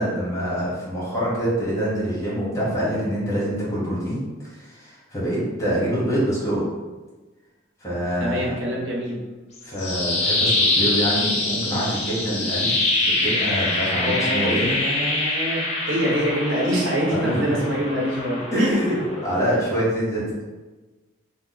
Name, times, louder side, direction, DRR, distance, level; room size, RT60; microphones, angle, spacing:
voice 1, 0.0-4.2 4.6-6.6 7.8-8.6 9.6-14.7 17.1-17.6 18.5-19.0 19.2-20.4, equal, 15° left, -7 dB, 1.0 m, -25 dB
voice 2, 8.2-9.2 14.0-18.8, equal, 80° right, -4 dB, 0.9 m, -25 dB
sound 1, 9.5-19.6, left 2 dB, 35° left, 0.5 m, -25 dB
2.9 x 2.0 x 3.8 m, 1.2 s
head